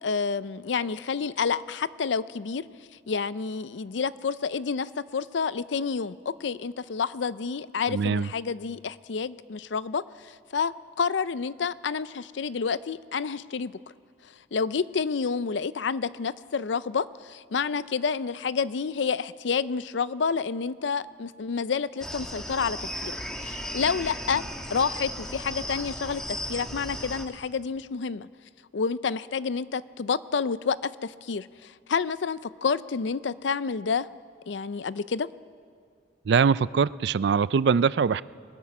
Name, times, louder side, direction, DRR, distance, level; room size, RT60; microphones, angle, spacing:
voice 1, 0.0-2.6 3.1-13.8 14.5-23.1 23.4-24.4 24.7-28.3 28.7-34.1 34.5-35.3, left 5 dB, 70° left, 17 dB, 0.5 m, -29 dB
voice 2, 7.9-8.3 36.3-38.2, right 6 dB, 65° right, 18 dB, 0.4 m, -22 dB
sound 1, 22.0-27.3, equal, 5° left, 1.3 m, -35 dB
21.5 x 20.5 x 6.0 m, 2.3 s
head